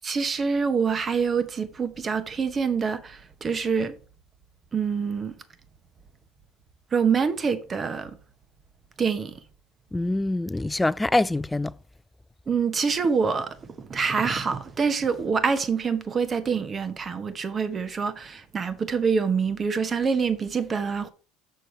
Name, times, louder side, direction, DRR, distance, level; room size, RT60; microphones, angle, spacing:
voice 1, 0.0-3.9 4.7-5.3 6.9-8.2 9.0-9.3 12.5-21.1, right 5 dB, 30° right, 1.1 m, -26 dB
voice 2, 9.9-11.7, left 2 dB, 10° left, 0.3 m, -24 dB
6.8 x 6.4 x 4.5 m
hypercardioid pair, 85°, 0 cm